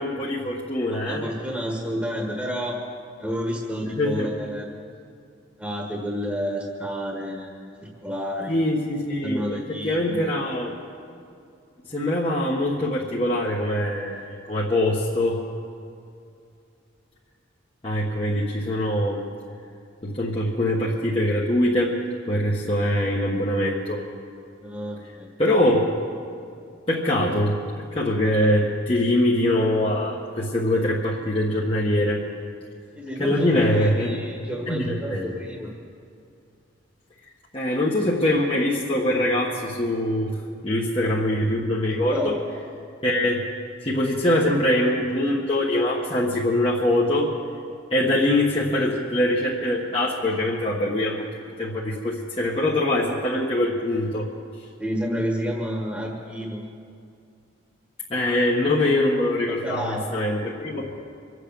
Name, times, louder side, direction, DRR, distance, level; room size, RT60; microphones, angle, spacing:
voice 1, 0.0-1.2 4.0-4.3 8.5-9.4 9.8-10.7 11.9-15.4 17.8-19.2 20.0-22.0 22.2-24.0 25.4-25.8 26.9-27.5 27.9-32.2 33.2-34.2 34.7-35.3 37.5-40.3 40.6-42.3 43.0-43.4 43.8-47.3 47.9-51.2 51.6-54.3 58.1-60.9, left 1 dB, 30° left, -5 dB, 1.4 m, -23 dB
voice 2, 0.9-2.8 3.2-4.7 5.6-8.6 9.2-10.3 24.6-25.3 32.9-35.7 42.1-42.3 48.7-48.8 54.8-56.6 59.5-60.0, equal, 5° right, -1 dB, 1.6 m, -30 dB
25.0 x 8.3 x 6.9 m, 2.4 s
head